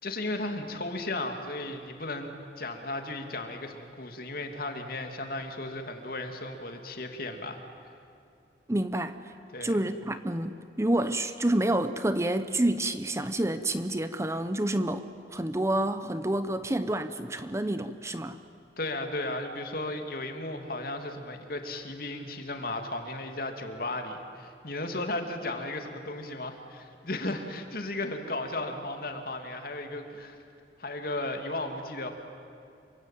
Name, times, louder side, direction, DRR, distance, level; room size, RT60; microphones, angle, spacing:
voice 1, 0.0-7.9 9.5-9.9 18.8-30.4 30.8-32.2, left 2 dB, 55° left, 5 dB, 2.6 m, -35 dB
voice 2, 8.7-9.2 9.6-15.1 15.3-18.4, right 1 dB, 15° right, 11 dB, 0.8 m, -28 dB
27.5 x 23.5 x 9.1 m, 2.6 s
head